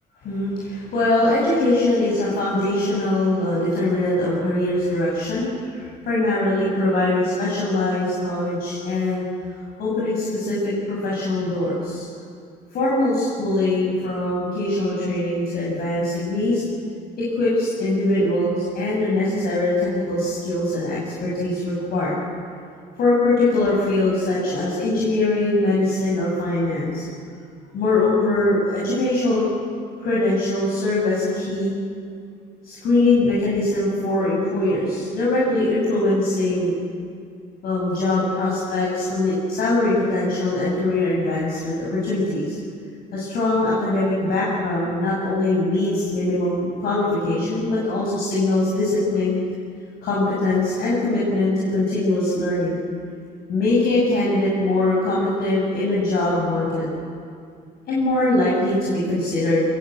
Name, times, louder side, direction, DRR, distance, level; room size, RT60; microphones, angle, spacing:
voice 1, 0.2-9.2 9.8-12.1 12.7-16.6 17.2-22.1 23.0-27.1 27.7-29.4 30.0-31.7 32.6-36.8 37.6-42.6 43.1-49.4 50.0-52.8 53.5-56.8 57.9-59.6, left 2 dB, 65° left, -5 dB, 7.0 m, -22 dB
25.0 x 21.5 x 8.0 m, 2.3 s
cardioid pair, 110°, 17 cm